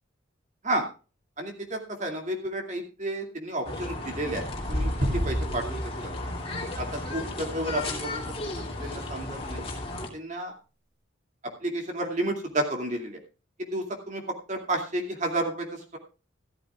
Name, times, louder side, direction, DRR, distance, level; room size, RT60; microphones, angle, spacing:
voice 1, 1.4-5.8 6.8-8.2 8.8-9.6 10.1-10.5 11.6-13.2 13.6-16.0, right 1 dB, 35° right, 3 dB, 2.4 m, -31 dB
sound 1, 3.6-10.1, left 1 dB, 30° left, 2.8 m, -33 dB
sound 2, 5.0-7.6, equal, 65° right, 2.9 m, -33 dB
14.5 x 13.5 x 2.4 m, 0.34 s
head